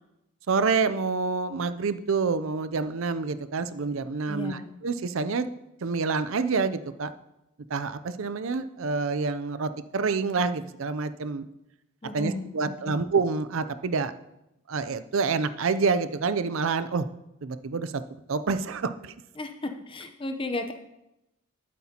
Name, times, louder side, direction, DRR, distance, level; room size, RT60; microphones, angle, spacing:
voice 1, 0.5-5.5 5.8-7.1 7.7-11.5 12.1-14.1 14.7-17.1 17.4-18.0 18.3-19.1, right 4 dB, 65° right, 12 dB, 0.5 m, -27 dB
voice 2, 4.3-4.7 12.0-12.5 12.9-13.0 19.4-20.7, left 2 dB, 25° left, 6 dB, 0.7 m, -34 dB
12.0 x 8.4 x 2.9 m, 0.89 s
head